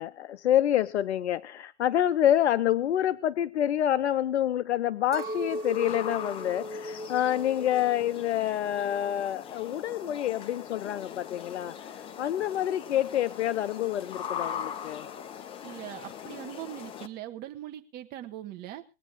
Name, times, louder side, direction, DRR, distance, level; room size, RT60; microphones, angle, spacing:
voice 1, 0.0-15.1, left 11 dB, 70° left, 17 dB, 0.6 m, -27 dB
Chink clink, 5.1-9.5 9.7-10.6, equal, 10° right, 0.9 m, -39 dB
sound 1, 5.3-17.1, left 8 dB, 15° left, 0.7 m, -41 dB
voice 2, 15.6-18.8, right 13 dB, 25° right, 6 dB, 1.5 m, -41 dB
20.5 x 9.1 x 4.0 m, 0.31 s
hypercardioid pair, 130°, 35 cm